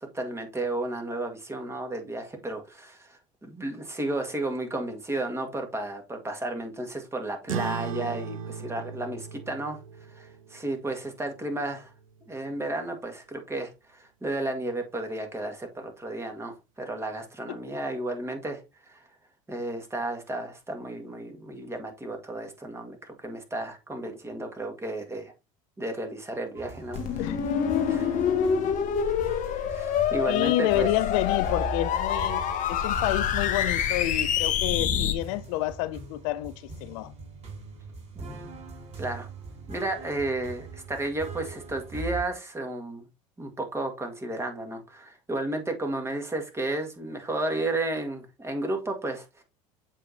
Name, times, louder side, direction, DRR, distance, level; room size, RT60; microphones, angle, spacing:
voice 1, 0.1-9.8 10.1-11.9 12.3-18.6 18.9-19.0 19.5-25.3 25.8-27.0 27.9-28.2 28.6-28.8 29.7-30.9 38.1-38.6 39.0-39.3 39.7-43.1 43.4-49.4, right 2 dB, 15° right, 1.8 m, -33 dB
sound 1, 7.5-12.3, right 7 dB, 85° right, 0.8 m, -38 dB
sound 2, 26.6-42.2, right 3 dB, 40° right, 2.7 m, -41 dB
sound 3, 26.9-35.1, left 8 dB, 50° left, 1.0 m, -26 dB
voice 2, 30.3-32.4 32.7-37.1, left 16 dB, 70° left, 0.5 m, -29 dB
7.4 x 4.9 x 2.7 m
hypercardioid pair, 75°, 17 cm